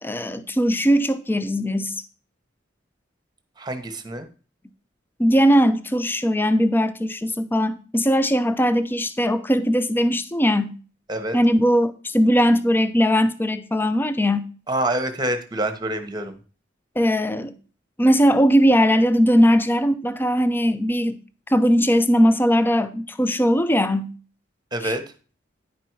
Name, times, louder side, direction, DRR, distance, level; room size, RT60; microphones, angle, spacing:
voice 1, 0.0-2.0 5.2-10.8 11.3-14.5 17.0-17.6 18.0-21.2 21.5-24.2, equal, 10° left, 0.5 m, -19 dB
voice 2, 3.6-4.3 11.1-11.4 14.7-16.4 24.7-25.0, right 1 dB, 20° right, 1.0 m, -26 dB
10.0 x 5.2 x 4.6 m
head